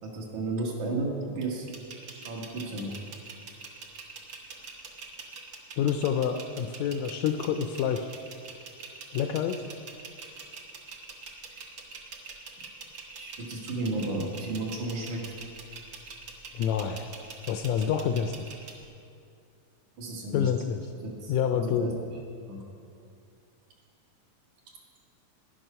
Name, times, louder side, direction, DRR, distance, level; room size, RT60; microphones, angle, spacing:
voice 1, 0.0-1.7 2.1-2.9 13.1-15.2 20.0-20.5 21.0-21.3 21.6-21.9 22.5-22.6, right 2 dB, 70° right, -2 dB, 3.1 m, -33 dB
sound 1, 1.7-18.8, right 4 dB, 55° right, 1.6 m, -44 dB
voice 2, 5.8-8.1 9.1-9.6 16.5-17.1 17.5-18.4 20.3-20.8 21.3-21.9, left 8 dB, 80° left, 7 dB, 1.7 m, -27 dB
12.5 x 10.5 x 5.5 m, 2.4 s
omnidirectional pair, 3.5 m